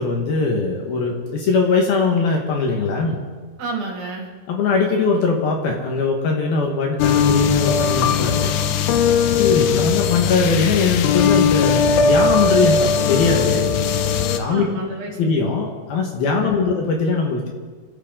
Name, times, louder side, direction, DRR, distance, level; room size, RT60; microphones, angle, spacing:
voice 1, 0.0-3.2 4.5-8.5 9.3-13.6 14.3-14.7 15.2-17.5, left 4 dB, 65° left, 1 dB, 2.9 m, -21 dB
voice 2, 3.6-4.3 9.6-10.0 14.5-15.3 16.4-16.7, right 3 dB, 60° right, 0 dB, 3.7 m, -31 dB
sound 1, 7.0-14.4, left 6 dB, 85° left, 3.2 m, -18 dB
28.0 x 13.0 x 3.8 m, 1.5 s
omnidirectional pair, 5.5 m